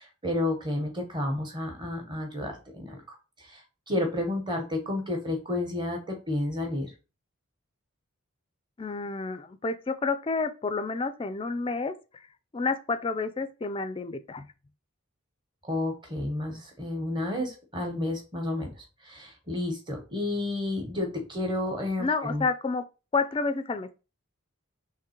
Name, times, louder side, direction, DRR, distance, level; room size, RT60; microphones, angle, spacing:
voice 1, 0.0-3.1 3.9-6.9 15.6-18.7 19.1-22.4, left 1 dB, 20° right, 1.1 m, -31 dB
voice 2, 8.8-11.9 12.5-14.5 22.0-22.9 23.1-24.0, left 4 dB, 25° left, 0.3 m, -29 dB
3.7 x 3.1 x 4.3 m
head